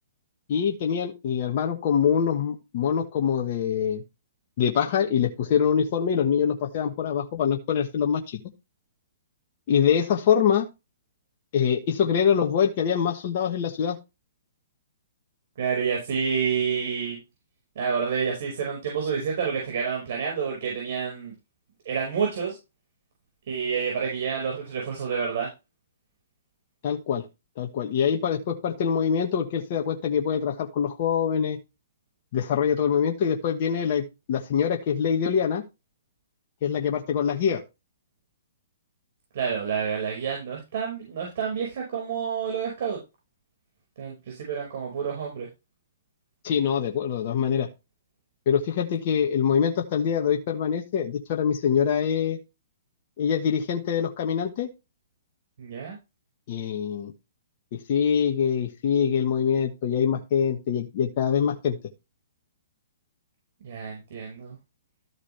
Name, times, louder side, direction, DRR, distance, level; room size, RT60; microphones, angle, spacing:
voice 1, 0.5-4.0 4.6-8.4 9.7-10.6 11.5-14.0 26.8-27.2 27.6-31.6 32.3-35.6 36.6-37.6 46.4-47.7 48.5-52.4 53.2-54.7 56.5-57.1 57.9-61.8, left 7 dB, 45° left, 2 dB, 1.4 m, -24 dB
voice 2, 15.6-17.2 17.8-21.3 21.9-22.6 23.5-25.5 39.3-43.0 44.0-45.5 55.6-56.0 63.6-64.6, right 6 dB, 55° right, -1 dB, 5.2 m, -29 dB
13.5 x 4.8 x 3.4 m, 0.25 s
hypercardioid pair, 140°, 0 cm